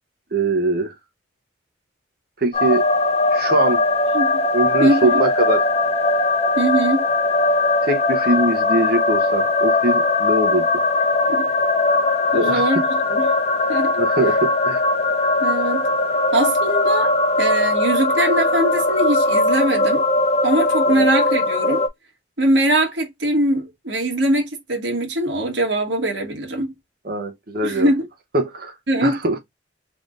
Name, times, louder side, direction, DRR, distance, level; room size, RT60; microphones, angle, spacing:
voice 1, 0.3-0.9 2.4-2.8 3.3-3.8 4.5-5.7 7.8-10.8 12.3-12.7 14.0-14.9 20.9-21.1 27.0-27.9 28.3-28.7 29.0-29.4, right 2 dB, 50° right, 0.9 m, -22 dB
sound 1, 2.5-21.9, left 2 dB, 35° left, 0.6 m, -19 dB
voice 2, 4.1-4.4 4.8-5.2 6.6-7.0 11.3-11.5 12.3-13.3 13.7-14.0 15.4-15.9 16.3-20.0 20.4-21.8 22.4-26.7 27.6-28.1 28.9-29.2, right 1 dB, 70° right, 1.6 m, -22 dB
3.9 x 3.5 x 2.5 m
head